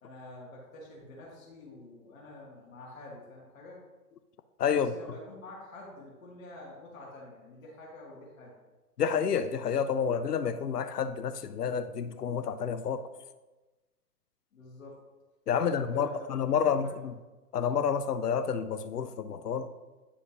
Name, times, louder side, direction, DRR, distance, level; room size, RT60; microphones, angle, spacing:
voice 1, 0.0-3.8 4.7-8.5 14.5-14.9 15.6-16.9, left 2 dB, 60° left, -4 dB, 2.1 m, -47 dB
voice 2, 4.6-4.9 9.0-13.1 15.5-17.1 17.5-19.7, left 7 dB, 80° left, 12 dB, 0.7 m, -29 dB
9.9 x 4.9 x 2.9 m, 1.2 s
hypercardioid pair, 125°, 46 cm